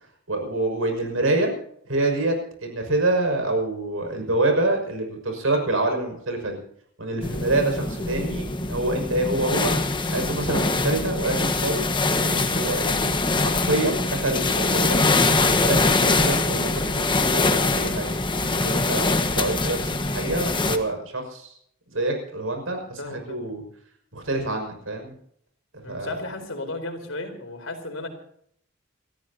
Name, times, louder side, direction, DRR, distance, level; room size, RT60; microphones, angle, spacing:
voice 1, 0.3-1.5 1.9-6.6 7.0-9.7 10.1-11.8 12.2-13.1 13.4-18.1 18.5-21.5 21.9-23.6 24.1-25.1 25.9-26.2, right 2 dB, 90° right, 4 dB, 6.2 m, -26 dB
sound 1, 7.2-20.8, left 3 dB, 25° left, 1.4 m, -23 dB
voice 2, 23.0-23.4 25.8-28.1, left 2 dB, 75° left, 5 dB, 4.2 m, -34 dB
29.5 x 14.5 x 2.8 m, 0.68 s
head